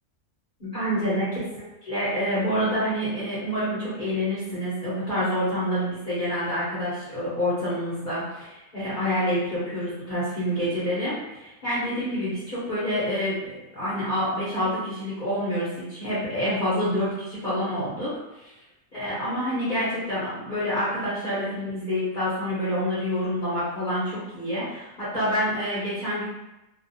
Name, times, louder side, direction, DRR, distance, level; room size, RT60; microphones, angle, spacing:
voice 1, 0.6-1.3 1.8-18.1 18.9-26.2, equal, 40° left, -11 dB, 0.9 m, -27 dB
2.5 x 2.2 x 2.6 m, 0.95 s
omnidirectional pair, 1.5 m